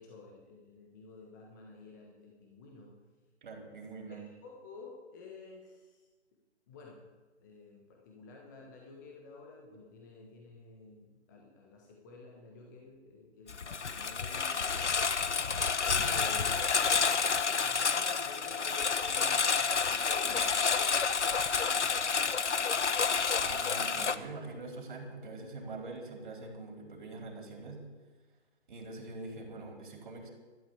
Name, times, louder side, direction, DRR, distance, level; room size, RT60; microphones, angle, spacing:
voice 1, 0.0-3.0 4.1-6.1 6.7-7.1 7.4-15.0 15.9-16.6 17.5-21.1 21.5-22.3, left 3 dB, 15° left, -1 dB, 1.4 m, -51 dB
voice 2, 3.4-4.2 23.4-27.8 28.7-30.3, right 3 dB, 45° right, 2 dB, 4.1 m, -44 dB
Engine, 13.5-24.1, left 5 dB, 80° left, 1.1 m, -29 dB
12.0 x 12.0 x 8.1 m, 1.3 s
hypercardioid pair, 165°, 35 cm